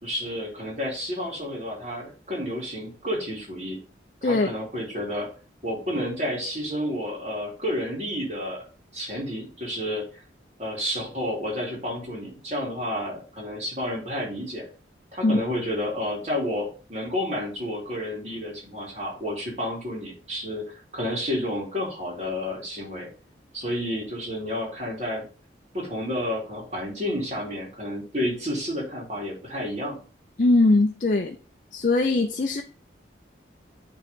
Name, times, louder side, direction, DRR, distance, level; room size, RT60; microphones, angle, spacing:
voice 1, 0.0-3.8 4.2-5.3 5.6-8.6 8.9-10.2 10.6-14.6 15.1-20.6 20.9-23.1 23.5-25.3 25.7-30.0, left 1 dB, 35° right, -3 dB, 3.1 m, -30 dB
voice 2, 30.4-31.4 31.7-32.6, left 2 dB, 45° left, 4 dB, 0.5 m, -21 dB
9.3 x 3.8 x 3.7 m, 0.38 s
head